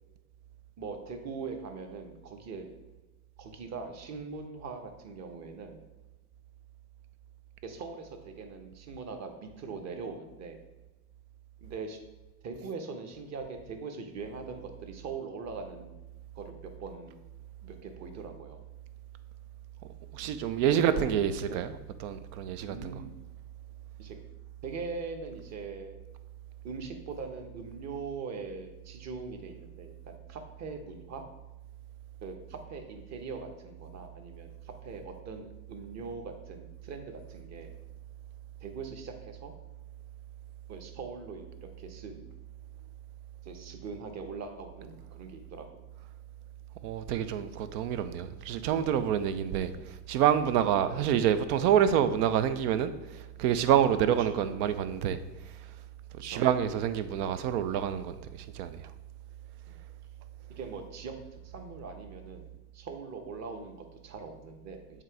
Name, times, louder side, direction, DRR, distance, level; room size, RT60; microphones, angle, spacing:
voice 1, 0.8-2.7 3.4-5.9 7.6-10.6 11.6-12.0 12.4-16.0 16.3-17.2 17.6-18.6 20.9-21.2 21.4-21.7 22.7-23.1 24.0-24.2 24.6-26.0 26.6-31.2 32.2-37.7 38.6-39.5 40.7-42.2 43.4-45.8 48.7-48.9 49.5-49.9 50.8-51.1 54.2-54.4 56.2-56.4 59.7-59.8 60.6-61.1 61.4-65.0, right 4 dB, 35° right, 1.0 m, -42 dB
voice 2, 20.1-21.7 22.0-22.9 46.8-49.7 50.1-52.9 53.4-55.2 56.2-58.1 58.5-58.8, right 9 dB, 70° right, 0.7 m, -27 dB
7.4 x 2.9 x 4.7 m
supercardioid pair, 105°, 47 cm